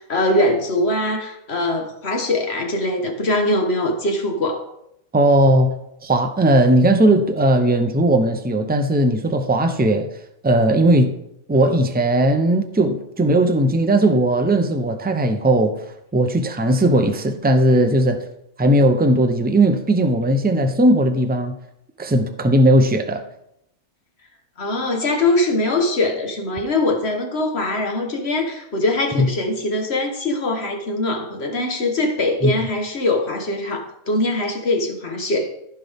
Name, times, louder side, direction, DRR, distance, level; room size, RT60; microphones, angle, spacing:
voice 1, 0.0-4.6 24.6-35.5, left 2 dB, 50° left, 1.6 m, -22 dB
voice 2, 5.1-5.7 6.0-10.1 10.4-11.1 11.5-18.2 18.6-21.6 22.0-23.2 29.2-29.3 32.4-32.5, right 1 dB, 15° right, 0.3 m, -17 dB
14.5 x 5.9 x 3.5 m
omnidirectional pair, 1.5 m